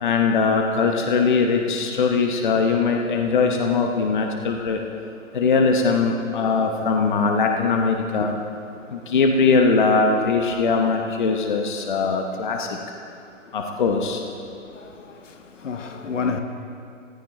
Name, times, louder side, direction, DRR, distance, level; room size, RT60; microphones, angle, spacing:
voice 1, 0.0-4.8 5.3-8.3 8.9-12.7 13.5-14.2, left 4 dB, 35° left, 0.9 m, -21 dB
voice 2, 14.7-16.4, left 5 dB, 65° left, 1.3 m, -30 dB
14.5 x 13.0 x 4.4 m
hypercardioid pair, 165°, 40 cm